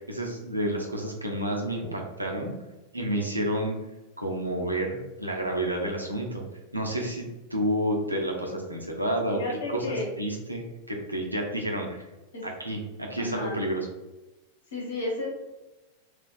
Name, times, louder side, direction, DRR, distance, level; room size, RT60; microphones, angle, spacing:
voice 1, 0.1-2.5 2.9-3.7 4.2-6.4 6.7-7.3 7.5-12.0 12.4-13.9, right 1 dB, 85° right, 0 dB, 0.7 m, -30 dB
voice 2, 9.3-10.0 12.3-12.4 13.2-13.6 14.7-15.3, left 2 dB, 65° left, -3 dB, 1.4 m, -32 dB
3.4 x 3.3 x 2.3 m, 1.1 s
figure-of-eight pair, 90°, 0 cm